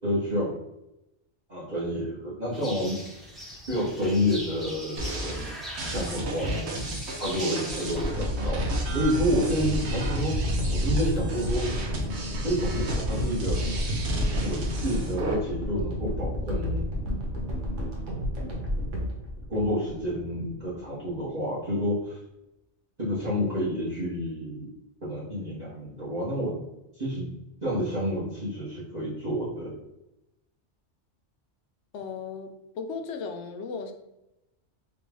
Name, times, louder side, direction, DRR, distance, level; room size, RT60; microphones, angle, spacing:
voice 1, 0.0-0.5 1.5-3.0 3.7-5.4 5.9-6.5 7.2-11.7 12.4-13.6 14.4-17.0 19.5-22.2 23.0-24.7 25.0-26.6 27.0-27.3 27.6-29.8, equal, 35° right, -9 dB, 1.2 m, -29 dB
sound 1, 2.5-8.1, equal, ahead, 0.5 m, -41 dB
sound 2, 5.0-15.3, right 1 dB, 70° right, 1.0 m, -33 dB
sound 3, 8.0-20.2 20.7-20.8, equal, 90° right, 1.2 m, -30 dB
voice 2, 31.9-33.9, left 5 dB, 75° left, 5 dB, 0.8 m, -36 dB
3.3 x 2.4 x 3.4 m, 0.91 s
omnidirectional pair, 1.2 m